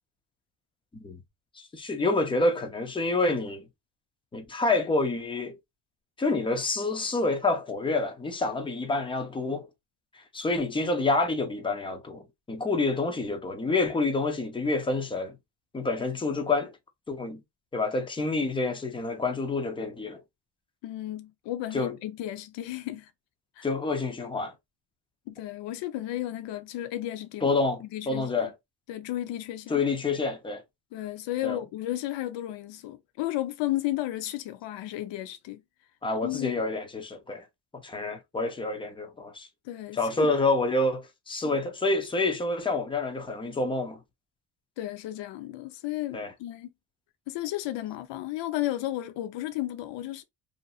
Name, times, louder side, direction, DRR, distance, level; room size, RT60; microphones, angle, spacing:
voice 1, 1.6-3.7 4.3-5.6 6.2-9.7 10.1-15.4 15.7-16.7 17.1-17.4 17.7-20.2 21.7-21.9 23.6-24.5 27.4-28.5 29.7-30.6 31.4-31.6 36.0-37.4 37.8-39.5 39.9-44.0 46.1-46.3, left 3 dB, 10° left, 0.4 m, -28 dB
voice 2, 20.8-23.1 23.6-23.7 25.3-28.5 28.9-29.8 30.9-35.6 36.2-36.6 39.6-40.3 44.8-46.7 47.3-50.2, left 14 dB, 70° left, 0.5 m, -33 dB
2.7 x 2.5 x 2.3 m
cardioid pair, 135°, 46 cm